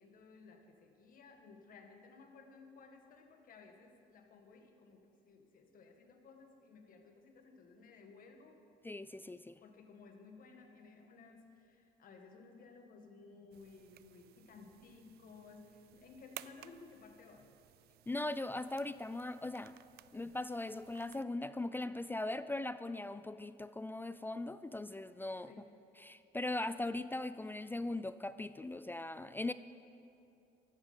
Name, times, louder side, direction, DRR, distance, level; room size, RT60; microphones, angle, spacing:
voice 1, 0.0-8.6 9.6-17.5 25.5-25.7, left 4 dB, 55° left, 4 dB, 1.9 m, -57 dB
voice 2, 8.8-9.6 18.1-19.7 20.1-25.5 26.0-29.5, left 2 dB, 10° left, 13 dB, 0.3 m, -39 dB
sound 1, 13.5-21.2, right 14 dB, 70° right, 0.5 m, -57 dB
15.5 x 12.5 x 5.7 m, 2.7 s
cardioid pair, 110°, 17 cm